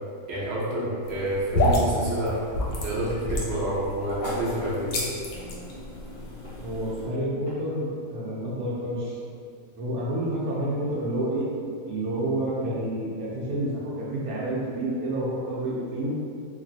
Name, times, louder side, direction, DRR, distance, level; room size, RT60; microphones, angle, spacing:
voice 1, 0.3-2.4 2.8-5.0, right 1 dB, 55° right, -7 dB, 0.8 m, -28 dB
sound 1, 1.0-7.1, left 1 dB, 70° left, 1.0 m, -29 dB
Knock / Wood, 1.6-4.5 5.4-5.6 6.4-6.6 7.5-7.6, equal, 15° right, 0.6 m, -47 dB
voice 2, 6.6-9.2 9.8-11.5 11.8-16.1, right 1 dB, 75° right, -7 dB, 1.0 m, -29 dB
3.1 x 2.4 x 2.6 m, 2.2 s
omnidirectional pair, 1.6 m